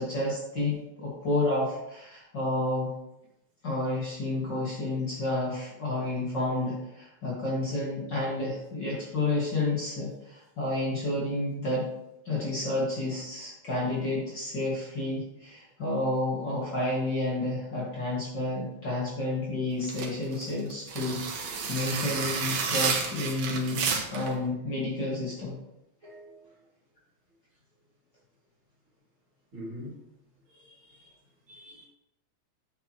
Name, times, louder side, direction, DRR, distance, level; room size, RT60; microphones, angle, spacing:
voice 1, 0.0-2.9 3.6-11.9 12.3-23.8 24.1-25.5, left 2 dB, 40° left, -5 dB, 2.3 m, -30 dB
sound 1, 19.8-24.3, right 5 dB, 70° right, 2.4 m, -31 dB
voice 2, 26.0-26.5 29.5-29.9 30.6-31.1 31.5-31.8, equal, 45° right, -5 dB, 3.6 m, -44 dB
8.8 x 8.4 x 3.1 m, 0.85 s
omnidirectional pair, 3.3 m